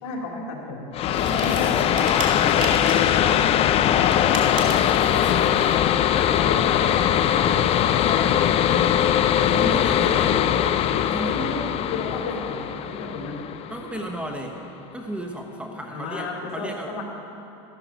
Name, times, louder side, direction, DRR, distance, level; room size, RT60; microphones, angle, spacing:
voice 1, 0.0-3.5 3.9-5.8 6.1-8.9 9.9-10.7 11.2-13.4 15.9-17.0, left 3 dB, 65° left, -1 dB, 3.2 m, -33 dB
sound 1, 0.9-14.3, left 10 dB, 40° left, 0.5 m, -21 dB
sound 2, 1.1-3.2 4.0-5.8, right 4 dB, 55° right, 2.1 m, -35 dB
voice 2, 9.4-10.3 11.1-11.4 12.1-12.2 13.7-14.6 14.9-17.0, right 1 dB, 5° right, 2 dB, 1.0 m, -33 dB
13.5 x 12.0 x 5.1 m, 3.0 s
supercardioid pair, 120°, 16 cm